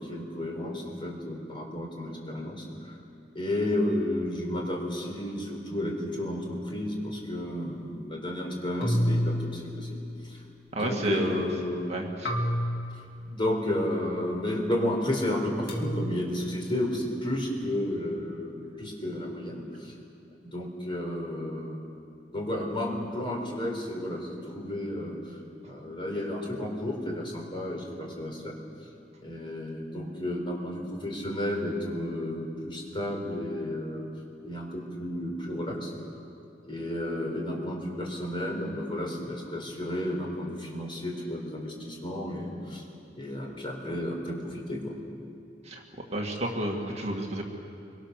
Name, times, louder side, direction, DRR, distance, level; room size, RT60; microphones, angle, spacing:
voice 1, 0.0-2.9 3.3-10.0 10.2-10.4 10.7-11.9 13.2-19.9 20.4-21.8 22.3-25.2 25.7-28.5 29.2-34.1 34.4-35.9 36.7-42.8 43.2-44.9, left 1 dB, 30° left, 0 dB, 4.2 m, -32 dB
sound 1, 8.8-10.6 12.2-13.7 15.7-16.1, equal, 60° left, 2.5 m, -30 dB
voice 2, 10.7-11.4 11.9-12.3 45.7-45.8 46.1-47.4, right 1 dB, 35° right, 0 dB, 2.3 m, -30 dB
24.5 x 24.0 x 6.7 m, 2.6 s
head